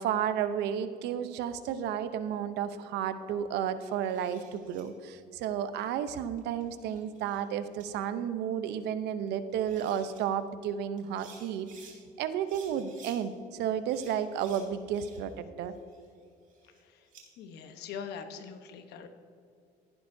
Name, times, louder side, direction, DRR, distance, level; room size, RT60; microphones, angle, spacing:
voice 1, 0.0-15.7, right 9 dB, 85° right, 11 dB, 0.7 m, -32 dB
sound 1, 3.8-4.8 6.4-7.4 7.8-7.9 9.3-9.4 9.6-10.2 11.0-12.0 12.4-13.2 13.9-15.4 15.7-17.2, right 5 dB, 50° right, 2.6 m, -55 dB
voice 2, 17.4-19.1, left 6 dB, 75° left, 7 dB, 1.0 m, -42 dB
15.0 x 11.0 x 2.7 m, 2.5 s
cardioid pair, 110°, 17 cm